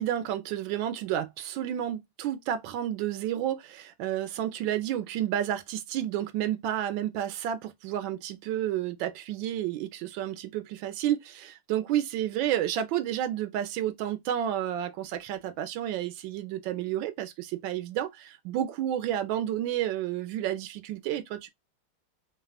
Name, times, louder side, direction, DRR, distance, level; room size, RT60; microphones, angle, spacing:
voice 1, 0.0-21.5, right 11 dB, 70° right, 1.3 m, -31 dB
3.4 x 2.2 x 2.3 m
omnidirectional pair, 2.4 m